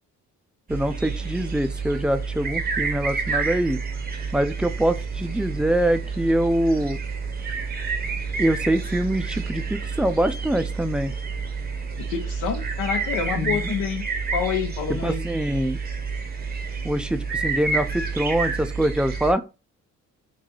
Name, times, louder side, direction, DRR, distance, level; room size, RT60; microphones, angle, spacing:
voice 1, 0.7-3.8 4.3-7.0 8.4-11.1 13.3-13.7 15.0-15.8 16.8-19.4, right 1 dB, 5° right, 0.3 m, -24 dB
sound 1, 0.7-19.3, right 5 dB, 30° right, 0.7 m, -29 dB
voice 2, 12.0-14.0 14.3-15.2, left 7 dB, 90° left, 0.8 m, -27 dB
3.2 x 2.7 x 3.7 m
cardioid pair, 90°, 30 cm